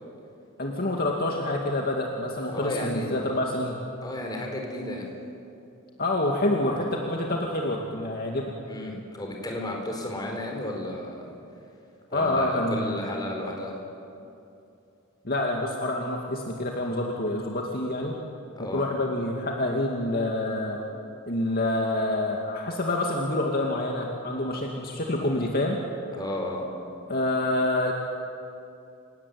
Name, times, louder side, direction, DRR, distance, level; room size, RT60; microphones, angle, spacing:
voice 1, 0.6-3.8 6.0-8.5 12.1-13.0 15.2-18.2 18.6-20.8 21.3-25.8 27.1-27.9, left 1 dB, 45° left, 0 dB, 2.3 m, -27 dB
voice 2, 2.5-3.2 4.0-5.1 8.7-11.3 12.1-13.7 18.6-18.8 26.1-26.6, left 1 dB, 20° left, 0 dB, 4.6 m, -33 dB
29.0 x 18.0 x 9.6 m, 2.7 s
head